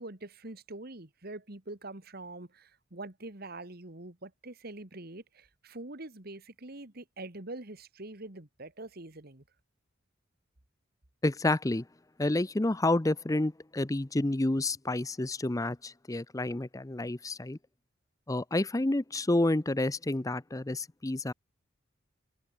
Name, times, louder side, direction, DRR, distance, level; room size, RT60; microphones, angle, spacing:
voice 1, 0.0-9.4, right 2 dB, 50° right, 2.2 m, -44 dB
voice 2, 11.2-11.8 12.2-17.6 18.3-21.3, left 2 dB, 15° left, 0.6 m, -29 dB
head